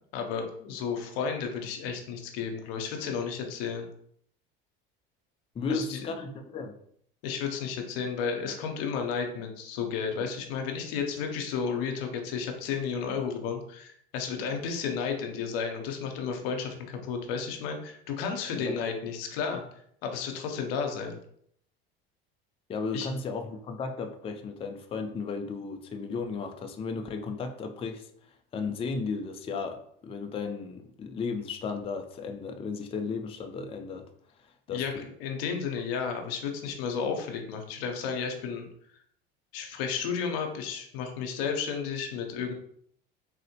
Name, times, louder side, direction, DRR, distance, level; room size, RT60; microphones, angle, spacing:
voice 1, 0.1-3.9 5.7-6.1 7.2-19.6 20.0-21.2 22.9-23.1 34.7-34.9 35.2-38.7 39.5-42.5, left 6 dB, 75° left, 4 dB, 0.6 m, -32 dB
voice 2, 5.6-6.8 18.6-18.8 22.7-28.1 28.5-34.1 34.7-34.8, left 4 dB, 20° left, 5 dB, 0.4 m, -34 dB
3.7 x 2.1 x 2.8 m, 0.66 s
hypercardioid pair, 80°, 29 cm